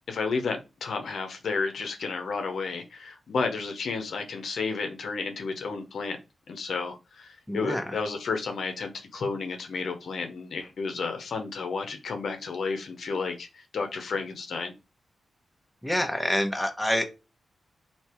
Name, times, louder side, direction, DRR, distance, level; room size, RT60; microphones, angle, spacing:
voice 1, 0.1-6.2 6.5-14.7, left 4 dB, 75° left, 0.7 m, -32 dB
voice 2, 7.5-8.0 15.8-17.0, equal, 5° left, 0.9 m, -27 dB
3.3 x 2.8 x 4.4 m
cardioid pair, 65°, 0 cm